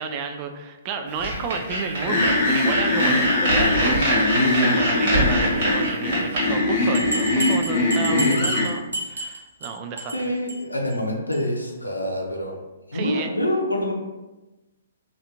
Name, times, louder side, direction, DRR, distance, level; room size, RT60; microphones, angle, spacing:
voice 1, 0.0-4.2 4.6-10.3 12.9-13.3, right 4 dB, 30° right, 5 dB, 0.3 m, -31 dB
sound 1, 1.2-6.4, right 1 dB, 50° right, 1.4 m, -24 dB
sound 2, 2.1-8.7, left 2 dB, 40° left, 0.7 m, -22 dB
voice 2, 4.3-4.8 8.1-8.7 10.1-12.6 12.9-13.9, left 1 dB, 85° left, 0 dB, 0.6 m, -26 dB
sound 3, 6.9-9.7 10.0-10.2 10.5-10.6 10.9-11.0 11.3-11.4, right 2 dB, 80° right, 0.7 m, -29 dB
3.2 x 2.6 x 2.8 m, 1.1 s
figure-of-eight pair, 125°, 0 cm